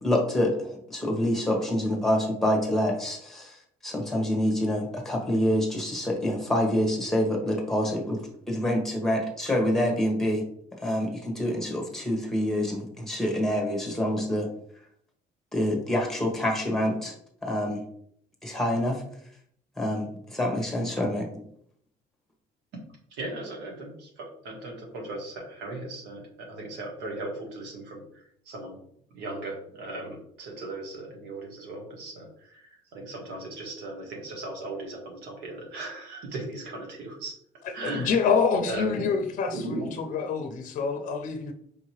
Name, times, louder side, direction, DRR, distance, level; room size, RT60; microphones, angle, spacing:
voice 1, 0.0-3.5 3.8-8.2 8.5-10.4 10.8-14.5 15.5-17.1 17.4-17.8 18.4-19.0 19.8-21.3, left 1 dB, ahead, 1 dB, 1.1 m, -26 dB
voice 2, 23.1-28.8 29.1-37.4 37.7-38.2 38.7-39.9 40.2-40.3, right 2 dB, 85° right, 0 dB, 1.3 m, -37 dB
voice 3, 37.8-39.9 40.1-41.5, left 5 dB, 50° left, 5 dB, 0.6 m, -26 dB
4.9 x 2.8 x 3.0 m, 0.66 s
cardioid pair, 110°, 17 cm